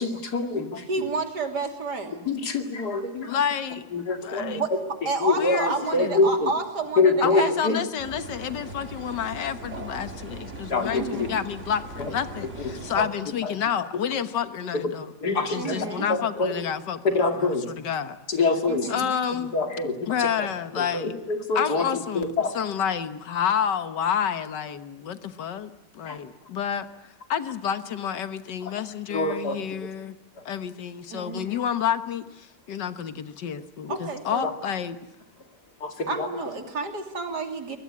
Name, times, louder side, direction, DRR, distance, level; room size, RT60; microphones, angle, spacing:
voice 1, 0.0-0.8 2.3-3.4 3.9-4.4 4.7-4.8 5.2-5.6 5.9-6.5 7.0-7.8 10.7-11.3 12.0-12.1 12.9-13.1 13.4-13.5 13.9-14.0 15.2-16.5 17.0-17.6 18.3-18.9 19.5-20.3 20.8-21.8 22.1-22.5 26.1-26.2 29.1-29.6 33.9-34.0 34.4-34.5 35.8-36.3, left 3 dB, 65° left, 5 dB, 2.9 m, -25 dB
voice 2, 0.9-2.3 4.4-4.7 5.0-7.8 10.9-11.4 15.5-16.1 18.7-19.1 31.1-31.4 33.9-34.5 36.1-37.8, right 4 dB, 70° right, 5 dB, 3.4 m, -30 dB
voice 3, 3.2-3.9 4.2-4.6 5.4-6.2 7.2-15.1 15.5-17.0 17.3-18.2 18.9-19.6 20.1-21.2 21.6-26.9 27.3-30.2 30.5-35.0, left 8 dB, 90° left, 11 dB, 1.9 m, -29 dB
sound 1, 8.0-13.1, right 2 dB, 45° right, 2.5 m, -39 dB
24.0 x 20.0 x 9.7 m, 1.0 s
omnidirectional pair, 1.8 m